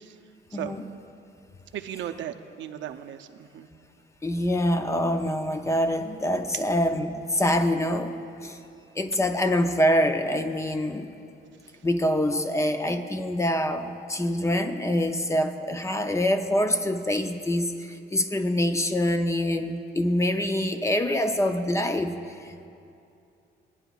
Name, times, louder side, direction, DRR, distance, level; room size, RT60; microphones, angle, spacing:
voice 1, 0.5-0.9 4.2-8.6 9.0-11.1 11.8-22.7, left 1 dB, 15° left, 7 dB, 0.4 m, -25 dB
voice 2, 1.7-3.7, right 10 dB, 75° right, 7 dB, 0.6 m, -36 dB
20.5 x 9.9 x 2.3 m, 2.6 s
cardioid pair, 150°, 20 cm